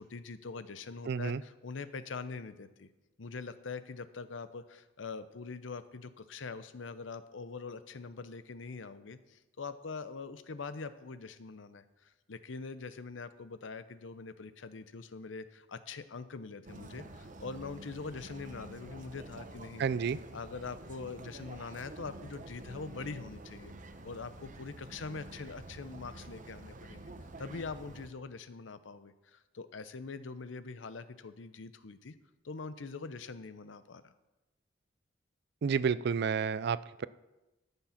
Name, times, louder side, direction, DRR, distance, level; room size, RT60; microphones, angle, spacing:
voice 1, 0.0-2.9 3.2-19.9 20.3-23.7 24.0-27.1 27.4-32.2 32.4-34.1, left 4 dB, 85° left, 13 dB, 0.7 m, -43 dB
voice 2, 1.1-1.4 19.8-20.2 35.6-37.1, right 6 dB, 60° right, 17 dB, 0.4 m, -30 dB
sound 1, 16.6-28.1, right 2 dB, 45° right, 0.8 m, -49 dB
13.0 x 7.1 x 5.8 m, 1.0 s
head